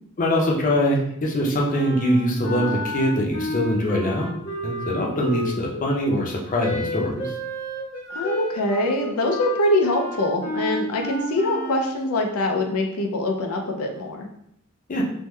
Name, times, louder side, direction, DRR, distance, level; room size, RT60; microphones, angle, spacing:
voice 1, 0.2-4.3 4.6-7.3 14.9-15.0, equal, 40° left, -1 dB, 0.6 m, -23 dB
Wind instrument woodwind instrument, 1.7-5.9 6.6-12.0, equal, 75° left, 0.9 m, -31 dB
voice 2, 8.1-14.3, left 1 dB, 90° left, 3 dB, 0.4 m, -24 dB
3.4 x 2.1 x 3.1 m, 0.74 s
head